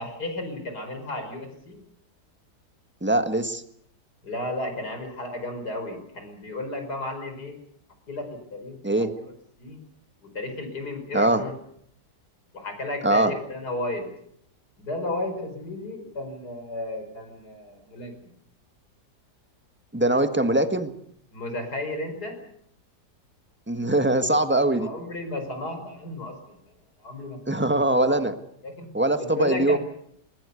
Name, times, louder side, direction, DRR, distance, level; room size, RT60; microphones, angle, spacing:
voice 1, 0.0-1.8 4.2-7.5 8.1-9.3 9.6-9.8 10.3-11.5 12.5-14.1 14.8-18.3 21.3-22.4 24.6-26.6 27.0-27.6 28.1-28.3 28.6-28.9 29.2-29.8, left 2 dB, 70° left, 6 dB, 5.6 m, -33 dB
voice 2, 3.0-3.6 8.8-9.1 11.1-11.4 13.0-13.3 19.9-20.9 23.7-24.9 27.5-28.3 28.9-29.8, right 1 dB, 5° right, 8 dB, 1.4 m, -22 dB
21.0 x 20.5 x 8.3 m, 0.70 s
omnidirectional pair, 1.8 m